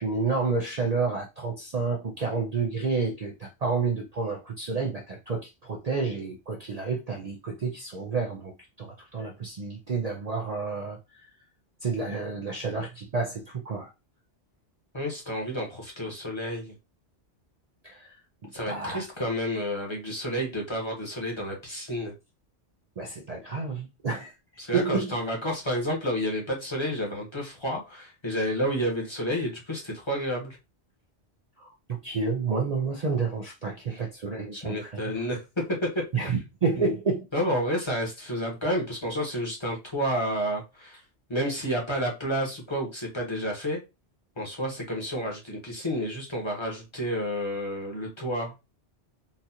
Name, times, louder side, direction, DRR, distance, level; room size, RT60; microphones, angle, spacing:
voice 1, 0.0-11.0 11.8-13.9 17.8-18.1 18.7-19.1 23.0-24.3 24.7-25.1 31.6-35.3 36.1-37.3, right 4 dB, 45° right, 0.6 m, -30 dB
voice 2, 14.9-16.7 18.5-22.1 24.6-30.6 33.9-34.0 34.5-36.3 36.8-36.9 37.3-41.0 41.3-43.8 44.4-48.5, equal, 25° left, 1.1 m, -30 dB
4.0 x 2.4 x 2.8 m
omnidirectional pair, 1.1 m